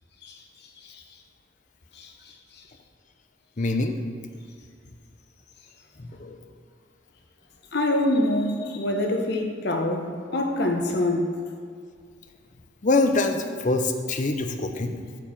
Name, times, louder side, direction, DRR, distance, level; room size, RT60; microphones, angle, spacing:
voice 1, 3.6-4.0 6.0-6.4 12.8-15.0, left 2 dB, 40° left, 6 dB, 0.6 m, -24 dB
voice 2, 7.7-10.1 10.3-11.3, left 1 dB, 55° left, 3 dB, 1.0 m, -24 dB
9.1 x 4.8 x 7.2 m, 2.2 s
head